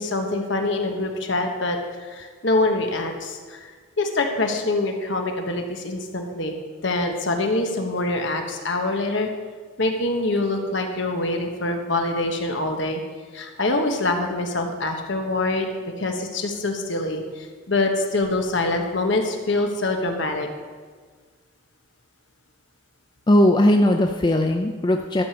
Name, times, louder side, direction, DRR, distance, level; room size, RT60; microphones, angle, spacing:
voice 1, 0.0-3.7 4.0-6.5 6.8-9.3 9.8-13.0 13.3-15.7 16.0-20.5, left 2 dB, 60° left, 4 dB, 1.2 m, -25 dB
voice 2, 23.3-25.2, left 1 dB, 20° left, 4 dB, 0.4 m, -18 dB
12.0 x 5.0 x 7.0 m, 1.5 s
head